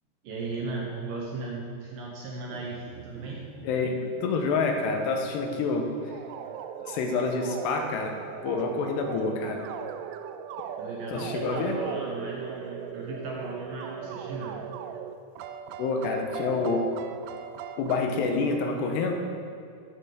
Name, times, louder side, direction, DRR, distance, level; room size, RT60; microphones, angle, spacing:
voice 1, 0.2-3.4 10.8-14.6, right 3 dB, 70° right, -2 dB, 2.3 m, -36 dB
sound 1, 2.5-18.0, right 9 dB, 90° right, 2.8 m, -39 dB
voice 2, 3.6-5.9 6.9-9.6 11.1-11.8 15.8-16.8 17.8-19.1, left 4 dB, 85° left, 3 dB, 3.0 m, -28 dB
13.5 x 5.7 x 5.0 m, 2.4 s
omnidirectional pair, 4.9 m